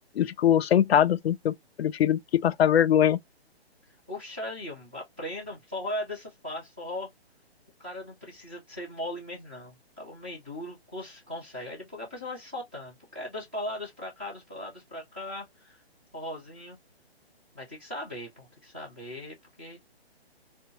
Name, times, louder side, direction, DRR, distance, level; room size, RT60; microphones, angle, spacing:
voice 1, 0.2-3.2, left 10 dB, 70° left, 0.4 m, -22 dB
voice 2, 4.1-7.1 7.8-15.8 16.1-16.8 17.5-19.8, left 1 dB, 10° right, 0.4 m, -38 dB
2.6 x 2.2 x 2.8 m
hypercardioid pair, 165°, 32 cm